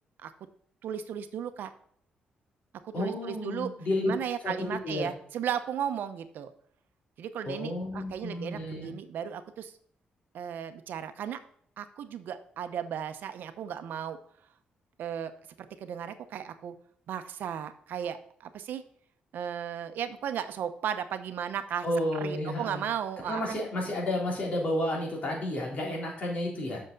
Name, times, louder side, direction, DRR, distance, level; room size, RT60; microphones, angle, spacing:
voice 1, 0.8-1.7 2.8-3.7 4.0-6.5 7.2-9.7 10.3-11.4 11.8-14.2 15.0-15.3 15.6-16.7 17.1-18.8 19.3-21.9 22.1-23.6, right 9 dB, 75° right, 10 dB, 0.8 m, -35 dB
voice 2, 2.9-4.1 4.4-5.1 7.5-8.9 21.8-22.8 23.3-26.8, left 1 dB, 45° left, -2 dB, 3.5 m, -31 dB
8.0 x 6.4 x 3.9 m, 0.62 s
cardioid pair, 125°, 3 cm